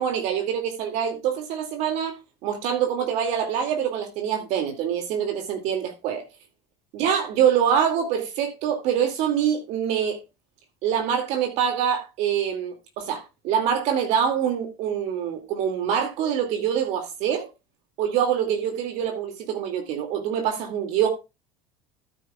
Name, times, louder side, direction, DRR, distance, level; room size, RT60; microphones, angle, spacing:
voice 1, 0.0-2.1 2.4-6.2 6.9-10.2 10.8-17.5 18.0-21.1, right 8 dB, 65° right, 2.3 m, -25 dB
13.5 x 9.2 x 2.3 m
supercardioid pair, 115°, 13 cm